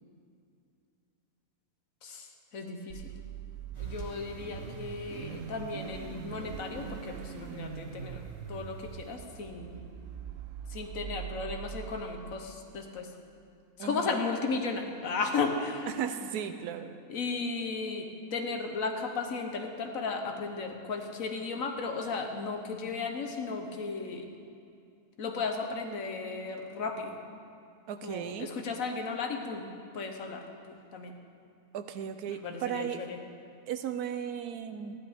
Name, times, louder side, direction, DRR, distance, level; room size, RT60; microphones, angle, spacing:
voice 1, 2.0-3.1 3.8-8.2 8.5-9.9 10.7-13.1 13.8-15.9 17.1-24.3 25.2-27.2 28.0-31.2 32.3-33.2, left 4 dB, 65° left, 4 dB, 1.3 m, -35 dB
Car / Idling / Accelerating revving vroom, 2.9-12.3, right 9 dB, 65° right, 0.8 m, -42 dB
sound 1, 3.7-9.2, equal, 20° right, 1.5 m, -54 dB
voice 2, 16.0-17.0 27.9-28.5 31.7-33.0 33.7-34.9, right 9 dB, 85° right, 9 dB, 1.2 m, -35 dB
15.0 x 11.5 x 3.5 m, 2.5 s
omnidirectional pair, 1.6 m